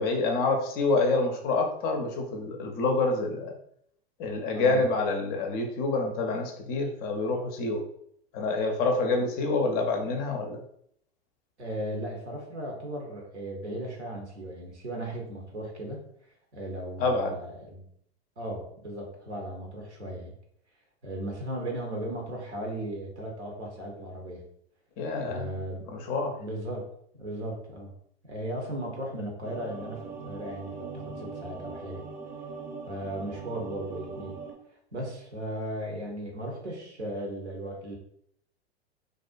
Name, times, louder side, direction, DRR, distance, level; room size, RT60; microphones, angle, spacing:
voice 1, 0.0-3.5 4.2-7.8 8.3-10.6 17.0-17.4 25.0-25.5 25.9-26.3, left 3 dB, 30° left, 3 dB, 0.4 m, -27 dB
voice 2, 11.6-16.0 16.5-17.8 18.4-20.3 21.0-24.4 25.2-25.9 26.4-27.9 28.2-32.0 32.9-34.4 34.9-38.0, right 1 dB, 85° right, 0 dB, 0.8 m, -36 dB
sound 1, 29.4-34.5, right 4 dB, 25° right, 0.6 m, -40 dB
2.4 x 2.1 x 2.4 m, 0.70 s
figure-of-eight pair, 95°, 33 cm